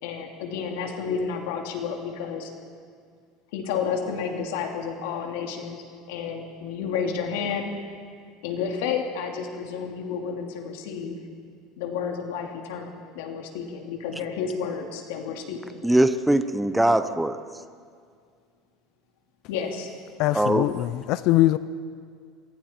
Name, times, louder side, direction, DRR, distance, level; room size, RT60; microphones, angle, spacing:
voice 1, 0.0-2.5 3.5-5.8 6.1-7.7 8.4-11.2 11.8-15.6 19.5-19.9, left 6 dB, 85° left, 2 dB, 2.6 m, -31 dB
voice 2, 15.8-17.4 20.3-20.7, right 1 dB, 5° right, 10 dB, 0.7 m, -21 dB
voice 3, 20.2-21.6, left 16 dB, 55° left, 14 dB, 0.5 m, -22 dB
27.5 x 23.0 x 4.4 m, 2.1 s
cardioid pair, 155°, 0 cm